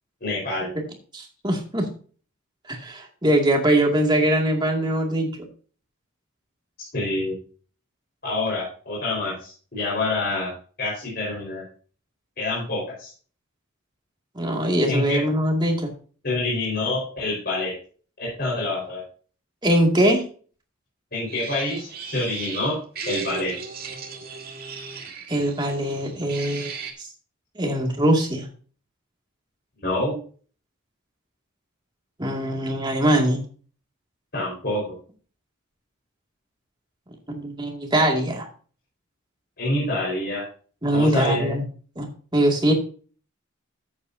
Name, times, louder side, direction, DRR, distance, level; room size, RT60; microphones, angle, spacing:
voice 1, 0.2-0.7 6.8-7.3 8.2-10.5 10.8-11.6 12.4-13.1 14.9-15.2 16.2-17.7 18.2-19.0 21.1-22.8 23.1-23.5 29.8-30.1 34.3-34.9 39.6-40.4 40.9-41.5, left 2 dB, 50° left, -6 dB, 4.9 m, -26 dB
voice 2, 1.1-1.9 2.7-5.5 14.3-15.9 19.6-20.2 25.3-26.7 27.0-27.1 27.6-28.5 32.2-33.4 37.3-38.5 40.8-41.6 42.0-42.1 42.3-42.7, right 1 dB, 20° right, 1 dB, 2.3 m, -22 dB
sound 1, 21.3-26.9, right 4 dB, 45° right, 2.1 m, -36 dB
13.5 x 8.5 x 2.8 m, 0.41 s
head